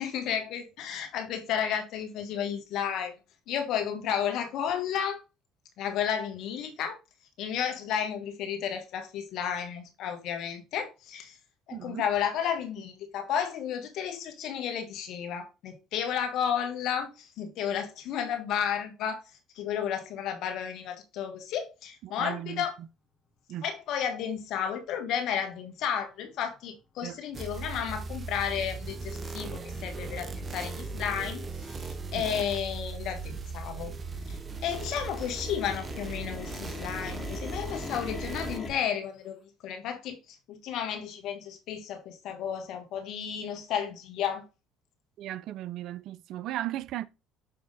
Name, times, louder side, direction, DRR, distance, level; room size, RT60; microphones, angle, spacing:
voice 1, 0.0-3.1 3.5-5.2 5.8-7.0 7.4-11.3 11.7-19.2 19.5-22.7 23.6-33.9 34.3-39.4 39.6-40.2 40.5-44.5, left 8 dB, 65° left, 1.5 m, -32 dB
voice 2, 11.7-12.0 22.0-22.9 23.5-23.7 27.0-27.2 32.1-32.3 45.2-47.0, right 13 dB, 65° right, 0.4 m, -36 dB
sound 1, 27.3-38.6, right 4 dB, 35° right, 0.7 m, -38 dB
sound 2, 29.6-29.7 30.1-30.2 30.5-31.0 31.3-33.6 33.9-38.7, left 4 dB, 30° left, 1.5 m, -43 dB
6.8 x 3.5 x 4.0 m
supercardioid pair, 70°, 0 cm